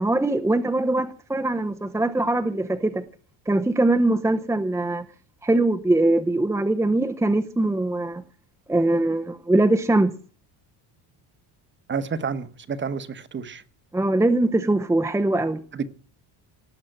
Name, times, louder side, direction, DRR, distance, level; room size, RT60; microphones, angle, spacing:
voice 1, 0.0-3.0 3.5-5.0 5.4-8.2 8.7-10.1 13.9-15.6, right 2 dB, 5° right, 0.7 m, -22 dB
voice 2, 11.9-13.6 15.7-15.9, right 5 dB, 25° right, 1.2 m, -30 dB
18.5 x 7.3 x 9.0 m
cardioid pair, 150°, 44 cm